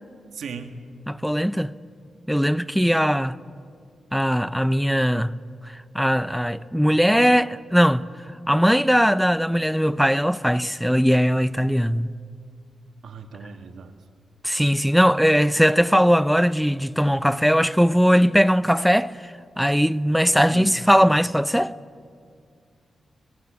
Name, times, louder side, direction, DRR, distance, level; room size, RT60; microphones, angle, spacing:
voice 1, 0.3-0.8 13.0-13.9 20.5-20.8, right 6 dB, 80° right, 1.8 m, -37 dB
voice 2, 1.1-1.7 2.3-3.4 4.1-5.4 5.9-8.0 8.5-12.1 14.4-19.1 19.6-21.7, equal, ahead, 0.7 m, -19 dB
23.0 x 20.5 x 8.8 m
cardioid pair, 65°, 0 cm